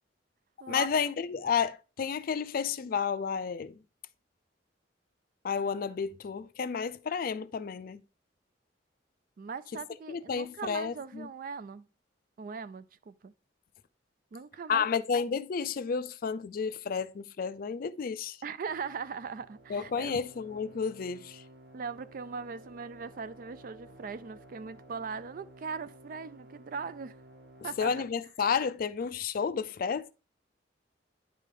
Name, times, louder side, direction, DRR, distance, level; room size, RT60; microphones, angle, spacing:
voice 1, 0.7-3.8 5.4-8.0 10.1-11.3 14.7-18.4 19.7-21.4 27.8-30.1, left 6 dB, 50° left, 0.4 m, -31 dB
voice 2, 9.4-11.9 12.4-13.3 14.3-14.9 18.4-20.2 21.7-27.2 27.6-27.9, right 5 dB, 50° right, 0.4 m, -40 dB
sound 1, 18.7-28.1, right 1 dB, 65° right, 1.1 m, -54 dB
9.8 x 3.3 x 3.7 m
head